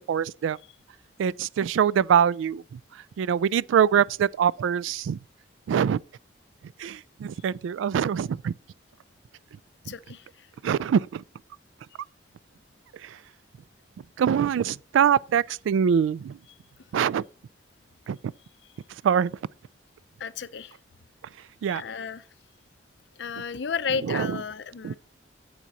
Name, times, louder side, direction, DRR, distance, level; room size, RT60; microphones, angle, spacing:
voice 1, 0.1-0.6 1.2-2.8 3.2-5.2 5.7-6.0 6.8-8.5 10.6-11.2 13.0-13.2 14.2-16.4 16.9-17.2 18.1-18.2 19.0-19.3 21.6-21.8 24.1-24.4 24.8-25.0, right 8 dB, 90° right, 0.3 m, -24 dB
voice 2, 9.8-10.5 20.2-20.8 21.7-22.3 23.2-25.0, left 6 dB, 65° left, 0.5 m, -33 dB
8.0 x 7.4 x 4.1 m
head